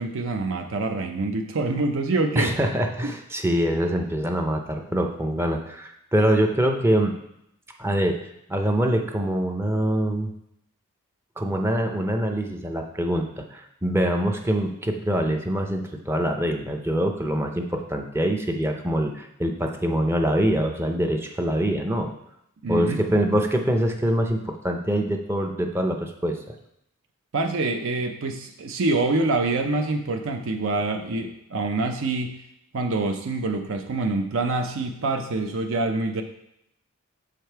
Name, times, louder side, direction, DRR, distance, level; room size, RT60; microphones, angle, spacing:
voice 1, 0.0-2.5 3.0-3.1 22.6-23.0 27.3-32.3 32.7-36.2, right 3 dB, 65° right, 5 dB, 0.5 m, -26 dB
voice 2, 2.4-7.2 7.8-8.2 8.5-10.3 11.4-22.1 22.7-26.4, right 1 dB, 10° right, 3 dB, 0.5 m, -24 dB
6.4 x 5.1 x 4.5 m, 0.78 s
head